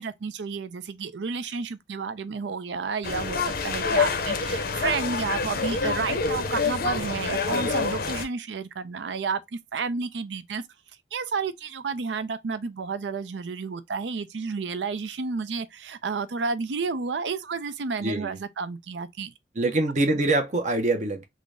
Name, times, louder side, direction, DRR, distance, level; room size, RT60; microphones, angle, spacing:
voice 1, 0.0-10.6 11.1-19.3, right 5 dB, 80° right, 0.5 m, -31 dB
sound 1, 3.0-8.3, left 4 dB, 55° left, 0.6 m, -27 dB
voice 2, 18.0-18.4 19.6-21.2, right 2 dB, 40° right, 0.6 m, -24 dB
3.7 x 2.0 x 3.2 m
head